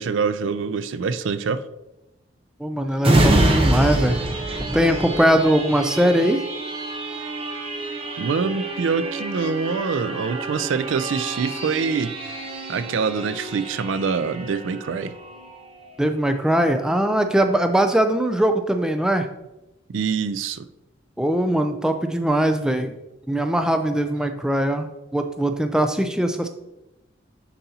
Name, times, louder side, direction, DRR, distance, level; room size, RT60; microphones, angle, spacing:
voice 1, 0.0-1.6 3.1-3.3 8.2-12.4 12.7-15.1 19.9-20.6, right 5 dB, 85° right, 12 dB, 0.4 m, -25 dB
voice 2, 2.6-4.2 4.7-6.4 16.0-19.3 21.2-22.9 23.3-24.9 25.1-26.5, right 1 dB, 5° right, 7 dB, 0.3 m, -21 dB
sound 1, 3.0-16.3 16.8-16.9, right 1 dB, 30° right, 0.7 m, -26 dB
9.2 x 4.1 x 2.8 m, 0.95 s
head